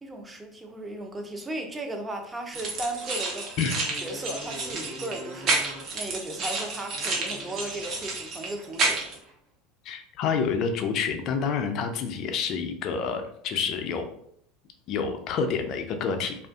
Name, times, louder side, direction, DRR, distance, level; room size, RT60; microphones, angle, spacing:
voice 1, 0.0-3.5 4.0-5.7 5.9-9.0, right 1 dB, 15° right, 4 dB, 0.5 m, -36 dB
Motorcycle, 2.1-9.5, right 1 dB, 75° right, 1.2 m, -46 dB
sound 1, 2.5-9.2, right 3 dB, 50° right, 0.8 m, -30 dB
voice 2, 9.9-14.1 14.9-16.3, left 6 dB, 50° left, 6 dB, 0.4 m, -28 dB
2.4 x 2.4 x 2.3 m, 0.68 s
hypercardioid pair, 80°, 0 cm